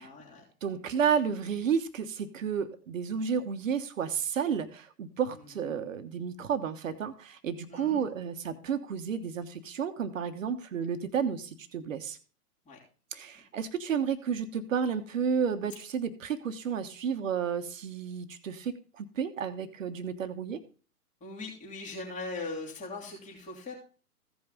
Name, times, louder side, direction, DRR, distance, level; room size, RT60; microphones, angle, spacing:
voice 1, 0.0-0.4 5.6-5.7 7.7-8.0 10.7-10.8 12.7-12.8 21.2-23.7, left 3 dB, 15° left, -3 dB, 3.0 m, -40 dB
voice 2, 0.6-12.2 13.1-20.6, right 7 dB, 55° right, 9 dB, 1.3 m, -31 dB
15.5 x 5.5 x 3.8 m, 0.37 s
figure-of-eight pair, 115°, 46 cm